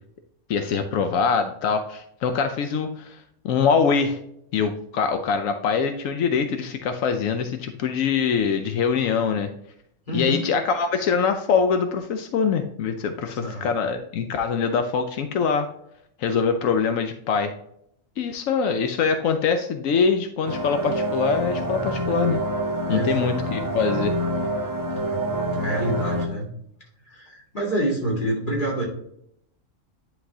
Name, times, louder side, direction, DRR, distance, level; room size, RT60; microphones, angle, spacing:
voice 1, 0.5-3.2 3.4-4.2 4.5-9.5 10.1-15.7 16.2-17.5 18.2-22.4 22.9-24.1, left 6 dB, 85° left, 7 dB, 1.0 m, -23 dB
voice 2, 10.1-10.4 13.3-13.7 22.9-23.7 24.9-25.2 25.5-26.5 27.1-28.8, right 1 dB, 40° left, -3 dB, 2.4 m, -28 dB
sound 1, 20.5-26.3, right 1 dB, 25° right, 0.4 m, -26 dB
10.0 x 4.0 x 2.8 m, 0.72 s
omnidirectional pair, 1.4 m